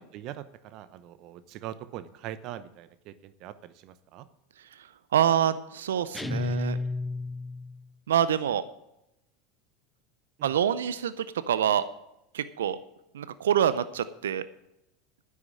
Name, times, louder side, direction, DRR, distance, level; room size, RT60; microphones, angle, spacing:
voice 1, 0.0-4.3 10.4-10.5, right 12 dB, 55° right, 14 dB, 0.8 m, -42 dB
voice 2, 5.1-6.8 8.1-8.6 10.4-11.8 12.3-12.8 13.1-14.4, right 9 dB, 80° right, 15 dB, 0.5 m, -26 dB
sound 1, 6.1-7.9, left 3 dB, 10° left, 0.3 m, -32 dB
9.9 x 8.4 x 7.6 m, 0.86 s
hypercardioid pair, 85°, 0 cm